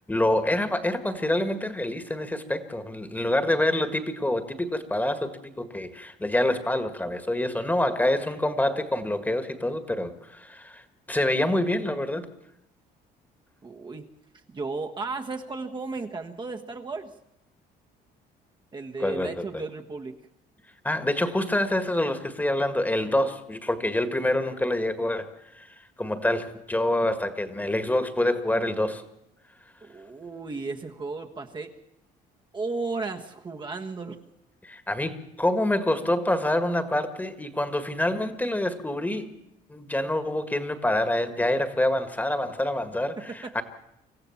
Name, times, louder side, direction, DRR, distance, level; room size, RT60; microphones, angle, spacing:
voice 1, 0.1-10.8 11.1-12.3 19.0-19.6 20.8-25.3 25.5-25.7 26.0-29.0 34.6-39.3 39.7-43.6, left 1 dB, 10° left, 9 dB, 1.8 m, -26 dB
voice 2, 13.6-14.1 14.5-17.1 18.7-20.2 29.8-31.7 32.5-34.2 43.2-43.5, right 3 dB, 25° right, 2 dB, 1.4 m, -34 dB
26.0 x 15.0 x 7.2 m, 0.81 s
cardioid pair, 110°, 17 cm